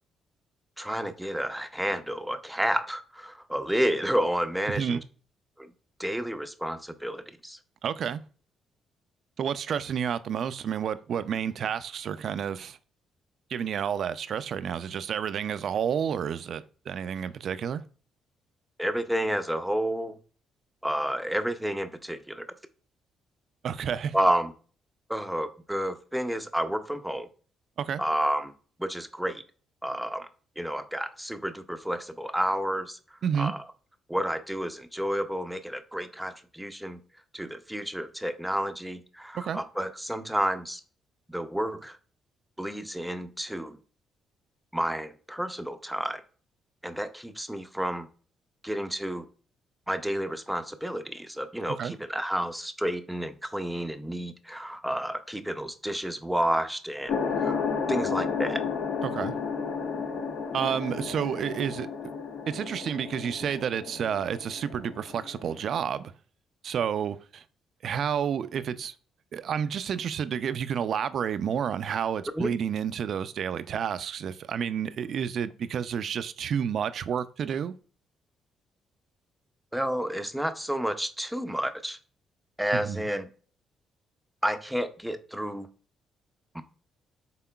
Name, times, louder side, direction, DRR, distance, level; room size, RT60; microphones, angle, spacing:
voice 1, 0.8-5.0 5.6-5.7 6.0-7.6 18.8-20.2 20.8-22.5 24.1-24.5 25.1-27.3 28.0-28.5 28.8-29.4 29.8-30.3 30.6-33.0 33.4-33.6 34.1-37.0 37.3-40.8 41.3-42.0 42.6-43.8 44.7-46.2 46.8-48.1 48.6-49.2 49.9-58.6 72.3-72.5 79.7-82.0 82.6-83.3 84.4-85.7 86.5-86.6, equal, 5° right, 0.5 m, -30 dB
voice 2, 7.8-8.2 9.4-12.8 13.5-17.8 23.6-24.1 27.8-28.0 33.2-33.5 39.4-39.6 51.8-51.9 59.0-59.3 60.5-61.9 62.5-66.1 66.6-67.4 67.8-68.9 69.3-77.7 82.7-83.0, right 8 dB, 60° right, 0.3 m, -30 dB
sound 1, 57.1-65.8, left 5 dB, 65° left, 0.6 m, -32 dB
5.7 x 3.7 x 2.3 m
cardioid pair, 90°, 0 cm